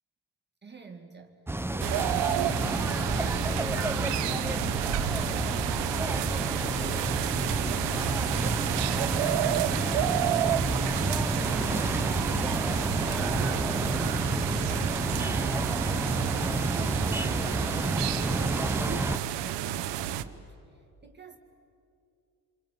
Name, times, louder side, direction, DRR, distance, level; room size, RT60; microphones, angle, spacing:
voice 1, 0.6-1.4 1.7-5.4 5.8-6.4 18.2-21.4, right 4 dB, 25° right, 2 dB, 2.2 m, -48 dB
sound 1, 1.5-19.2, right 2 dB, 5° right, 0.8 m, -30 dB
sound 2, 1.8-20.2, right 11 dB, 80° right, 1.1 m, -31 dB
sound 3, 13.4-14.1 14.4-15.8 16.1-17.4, right 1 dB, 90° left, 6.9 m, -44 dB
27.5 x 23.5 x 9.3 m, 2.6 s
cardioid pair, 90°, 42 cm